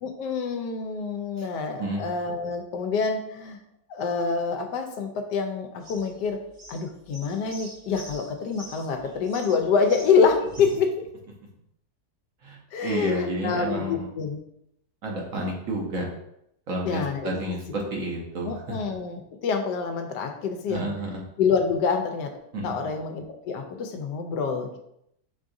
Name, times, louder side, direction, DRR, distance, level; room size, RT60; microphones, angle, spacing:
voice 1, 0.0-3.6 3.9-6.4 6.7-10.9 12.7-14.4 16.8-17.3 18.4-20.9 21.4-22.3 22.6-24.8, left 5 dB, 80° left, 6 dB, 1.2 m, -26 dB
sound 1, 5.8-10.8, equal, 35° right, 0.9 m, -46 dB
voice 2, 12.4-14.1 15.0-16.0 16.7-18.8 20.7-21.2 22.5-22.9, right 1 dB, 60° right, -1 dB, 1.1 m, -31 dB
4.6 x 3.6 x 2.6 m, 0.76 s
omnidirectional pair, 1.8 m